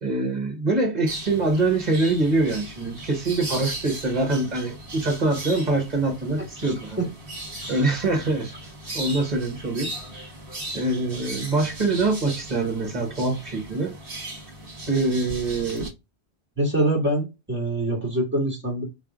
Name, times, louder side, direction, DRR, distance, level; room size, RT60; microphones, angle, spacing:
voice 1, 0.0-7.1 7.7-8.5 8.9-10.2 10.7-14.0 14.9-15.9, right 2 dB, 40° right, 1.3 m, -24 dB
sound 1, 1.1-15.9, right 1 dB, 60° right, 1.5 m, -37 dB
voice 2, 6.6-7.0 7.6-7.8 16.6-18.8, right 1 dB, 10° right, 1.8 m, -25 dB
4.1 x 3.3 x 2.4 m
omnidirectional pair, 1.1 m